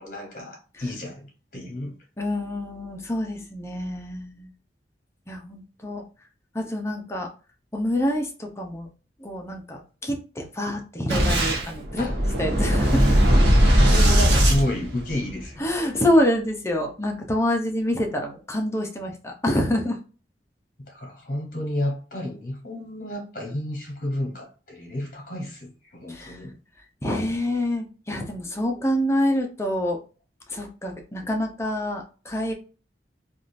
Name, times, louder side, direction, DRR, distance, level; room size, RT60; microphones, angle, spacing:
voice 1, 0.0-1.9 12.0-12.2 13.6-15.9 20.8-26.6, left 1 dB, 50° left, 1.0 m, -31 dB
voice 2, 2.2-4.5 5.3-6.0 6.5-7.3 7.7-8.9 9.2-12.1 12.4-13.1 15.6-20.0 26.1-26.4 27.0-30.0 30.5-32.5, left 1 dB, 15° left, 0.6 m, -26 dB
Boom, 11.1-15.5, equal, 80° right, 1.1 m, -19 dB
3.5 x 2.4 x 2.5 m
head